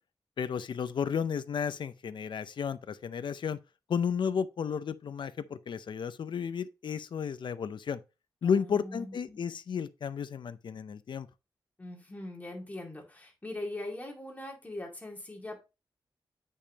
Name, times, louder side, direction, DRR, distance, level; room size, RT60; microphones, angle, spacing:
voice 1, 0.4-3.6 3.9-8.0 8.4-11.3, left 7 dB, 75° left, 0.6 m, -33 dB
voice 2, 8.4-9.4 11.8-15.6, left 1 dB, 20° left, 2.4 m, -41 dB
8.5 x 5.5 x 2.9 m
wide cardioid pair, 125°, 8 cm